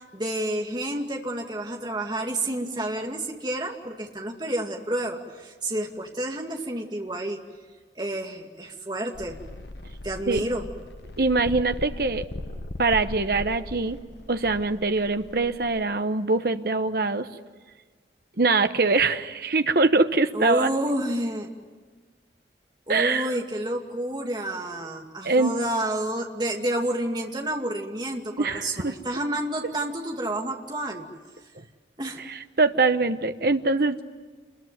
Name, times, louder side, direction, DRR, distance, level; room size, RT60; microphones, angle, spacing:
voice 1, 0.0-7.4 8.0-9.4 10.0-10.7 20.3-21.5 22.9-31.1 32.0-32.2, right 1 dB, 25° right, 2 dB, 2.4 m, -29 dB
sound 1, 9.1-15.8, left 1 dB, 75° left, 1.2 m, -38 dB
voice 2, 11.2-12.2 12.8-14.0 14.3-17.3 18.4-20.7 22.9-23.3 25.2-25.6 28.4-28.9 32.3-34.0, right 3 dB, 55° right, 8 dB, 1.0 m, -23 dB
28.5 x 22.0 x 9.4 m, 1.4 s
head